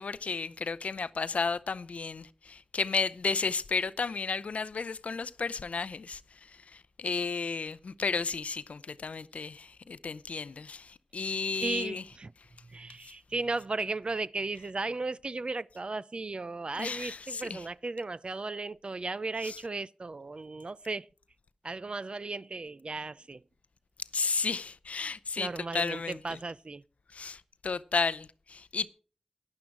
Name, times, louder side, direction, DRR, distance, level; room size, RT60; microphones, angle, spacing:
voice 1, 0.0-12.0 13.0-13.1 16.7-17.6 19.4-19.6 24.1-26.4 27.1-28.9, left 4 dB, 90° left, 0.6 m, -33 dB
voice 2, 11.6-12.3 12.6-21.1 21.6-23.4 25.4-26.8, right 3 dB, 50° right, 0.4 m, -35 dB
11.5 x 11.0 x 4.7 m
wide cardioid pair, 60°, 2 cm